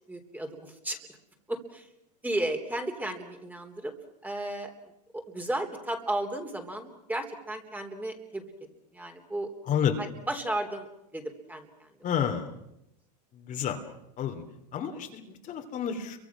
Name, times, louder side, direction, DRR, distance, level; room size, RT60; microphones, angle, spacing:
voice 1, 0.1-1.0 1.5-1.9 2.2-3.9 4.2-4.7 5.1-8.4 8.9-9.5 10.0-10.9 11.1-11.9, right 1 dB, 10° right, 4 dB, 3.6 m, -34 dB
voice 2, 9.7-10.0 12.0-12.5 13.4-13.8 14.2-14.4 14.7-16.2, left 8 dB, 40° left, 5 dB, 3.1 m, -30 dB
30.0 x 24.0 x 6.2 m, 0.82 s
hypercardioid pair, 110°, 21 cm